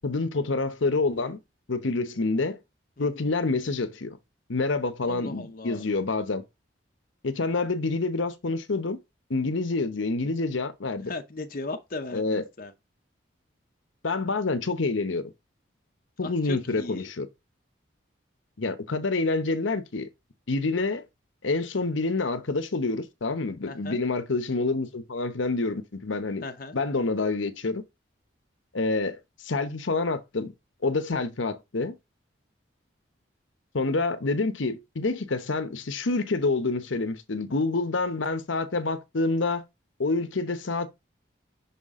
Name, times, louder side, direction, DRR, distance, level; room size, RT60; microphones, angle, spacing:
voice 1, 0.0-1.4 1.7-2.6 3.0-4.2 4.5-6.4 7.2-9.0 9.3-11.1 12.1-12.4 14.0-15.3 16.2-17.3 18.6-20.1 20.5-21.0 21.4-26.4 26.7-27.8 28.7-29.2 29.4-30.5 30.8-31.9 33.7-39.6 40.0-40.9, left 3 dB, 75° left, 0.9 m, -27 dB
voice 2, 3.0-3.3 5.0-5.8 11.0-12.7 16.2-17.1 23.7-24.0 26.4-26.8, left 3 dB, 45° left, 0.7 m, -37 dB
5.9 x 5.7 x 3.6 m
head